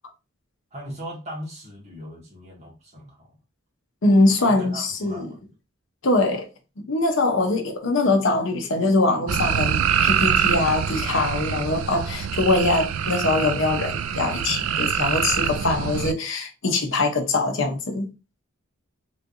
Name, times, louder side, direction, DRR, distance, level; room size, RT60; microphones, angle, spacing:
voice 1, 0.7-3.4 4.4-5.4, equal, 30° right, 1.6 m, -39 dB
voice 2, 4.0-5.3 6.0-6.5 6.8-18.1, left 2 dB, 60° left, 0.8 m, -22 dB
sound 1, 9.3-16.1, right 8 dB, 75° right, 0.3 m, -25 dB
3.5 x 3.2 x 2.6 m
head